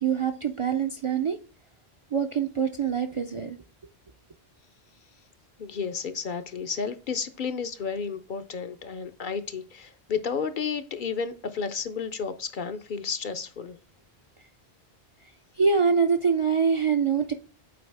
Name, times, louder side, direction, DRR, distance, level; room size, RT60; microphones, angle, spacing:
voice 1, 0.0-1.4 2.1-3.6 15.6-17.3, right 6 dB, 40° right, 0.4 m, -24 dB
voice 2, 5.6-13.8, left 6 dB, 55° left, 0.7 m, -32 dB
7.8 x 4.7 x 3.4 m
omnidirectional pair, 1.1 m